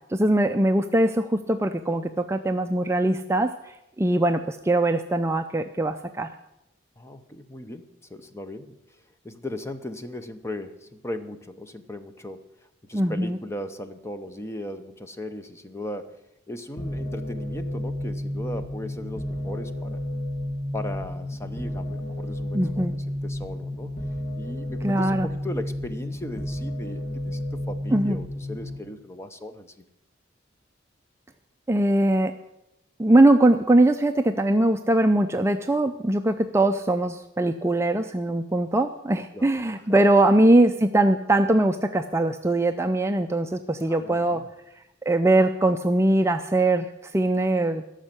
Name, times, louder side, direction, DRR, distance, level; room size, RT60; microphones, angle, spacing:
voice 1, 0.1-6.3 12.9-13.4 22.5-22.9 24.8-25.3 27.9-28.2 31.7-32.3 33.0-44.4 45.0-46.9 47.1-47.8, right 1 dB, 15° right, 6 dB, 0.4 m, -21 dB
voice 2, 7.0-8.8 9.2-12.5 12.8-16.2 16.5-20.0 20.7-23.9 24.4-29.8 39.3-39.5 43.8-44.5, left 1 dB, 15° left, 9 dB, 0.8 m, -37 dB
sound 1, 16.8-28.8, left 1 dB, 40° left, 1.7 m, -31 dB
13.5 x 6.4 x 9.6 m, 0.87 s
head